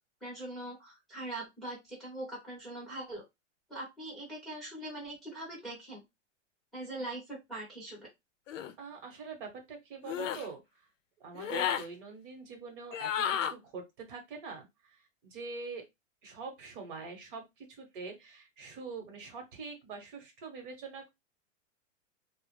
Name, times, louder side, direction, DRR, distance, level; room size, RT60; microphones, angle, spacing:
voice 1, 0.2-3.2 3.7-6.0 6.7-8.1, right 1 dB, ahead, -7 dB, 0.7 m, -42 dB
sound 1, 8.5-8.7 10.0-10.5 11.4-11.9 12.9-13.5, left 9 dB, 80° left, 0.5 m, -32 dB
voice 2, 8.8-10.6 11.2-15.8 16.2-21.1, right 4 dB, 40° right, 4 dB, 0.9 m, -44 dB
2.2 x 2.0 x 3.1 m, 0.20 s
hypercardioid pair, 155°, 38 cm